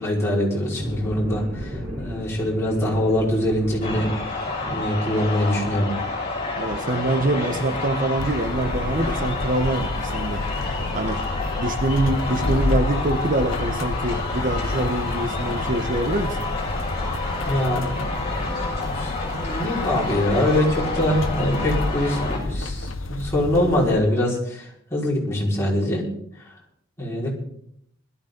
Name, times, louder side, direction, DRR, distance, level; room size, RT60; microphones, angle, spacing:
voice 1, 0.0-1.7 2.0-4.1 4.7-5.9 17.4-18.4 18.8-24.6 24.9-26.0 27.0-27.3, left 1 dB, 15° left, -6 dB, 5.2 m, -23 dB
sound 1, 0.7-15.5, equal, 5° right, 6.0 m, -38 dB
sound 2, 3.8-22.4, left 3 dB, 30° left, 6.2 m, -29 dB
voice 2, 6.6-10.5 10.9-11.2 11.6-16.4, right 1 dB, 45° right, 7 dB, 1.1 m, -25 dB
sound 3, 8.2-23.9, left 2 dB, 75° left, 1.0 m, -30 dB
21.0 x 13.5 x 4.0 m, 0.70 s
head